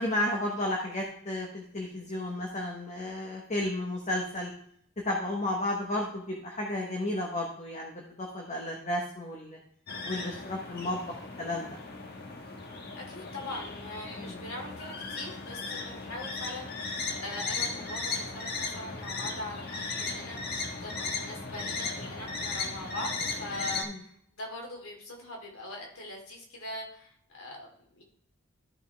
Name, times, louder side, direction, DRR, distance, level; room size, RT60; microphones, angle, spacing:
voice 1, 0.0-4.5 5.0-9.6 10.0-11.0 11.4-11.8 14.2-14.5 23.8-24.0, left 1 dB, 35° left, 0 dB, 1.2 m, -33 dB
sound 1, 9.9-23.8, left 4 dB, 50° left, 1.2 m, -36 dB
voice 2, 12.9-28.0, left 1 dB, 90° left, 0 dB, 2.6 m, -42 dB
13.0 x 5.6 x 3.4 m, 0.68 s
head